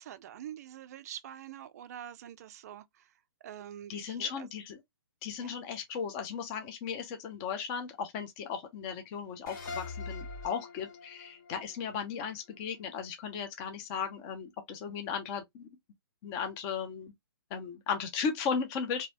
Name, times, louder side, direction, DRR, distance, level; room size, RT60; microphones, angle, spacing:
voice 1, 0.0-3.0 3.4-4.5 5.4-5.6, right 10 dB, 40° right, 0.3 m, -45 dB
voice 2, 3.9-4.8 5.2-15.7 16.2-17.1 17.5-19.1, left 6 dB, 25° left, 0.6 m, -36 dB
sound 1, 9.5-12.8, left 3 dB, 45° left, 1.9 m, -43 dB
3.0 x 2.7 x 2.7 m
hypercardioid pair, 145°, 13 cm